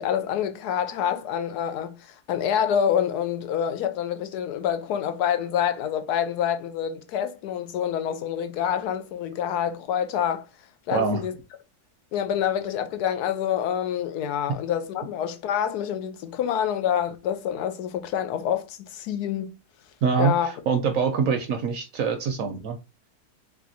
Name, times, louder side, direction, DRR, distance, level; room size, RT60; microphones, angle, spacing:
voice 1, 0.0-10.5 10.9-11.3 12.1-19.5 20.2-20.5, left 9 dB, 80° left, 1.2 m, -27 dB
voice 2, 20.0-22.8, right 5 dB, 65° right, 0.9 m, -24 dB
3.5 x 3.5 x 2.6 m
omnidirectional pair, 1.7 m